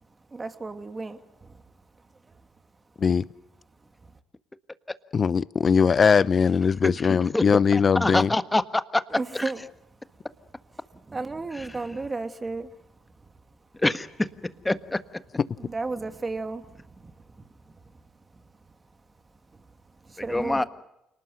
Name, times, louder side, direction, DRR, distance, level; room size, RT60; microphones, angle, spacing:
voice 1, 0.0-3.0 3.7-4.2 9.1-10.3 10.7-13.8 15.6-20.6, right 3 dB, 25° right, 2.5 m, -37 dB
voice 2, 5.1-8.3, left 6 dB, 45° left, 0.8 m, -20 dB
voice 3, 7.7-9.0 13.8-14.3 14.6-15.0 20.3-20.6, left 2 dB, 15° left, 1.5 m, -24 dB
29.0 x 19.5 x 6.7 m
hypercardioid pair, 55°, 0 cm